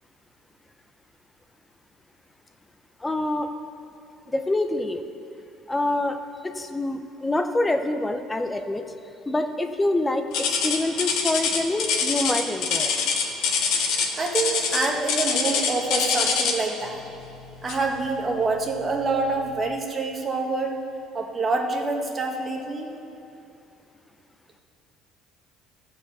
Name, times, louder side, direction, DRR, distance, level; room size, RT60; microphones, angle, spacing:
voice 1, 3.0-3.5 4.3-5.0 5.7-6.2 6.4-8.8 9.3-10.2 10.6-12.9, left 2 dB, 15° left, 7 dB, 0.6 m, -26 dB
sound 1, 10.3-16.7 17.7-17.9 18.5-18.6 19.3-19.4, left 6 dB, 70° left, 1.2 m, -24 dB
voice 2, 14.1-17.0 17.6-20.8 21.1-22.9, right 3 dB, 30° right, 1 dB, 1.5 m, -26 dB
14.5 x 4.9 x 6.8 m, 2.7 s
supercardioid pair, 100°, 0 cm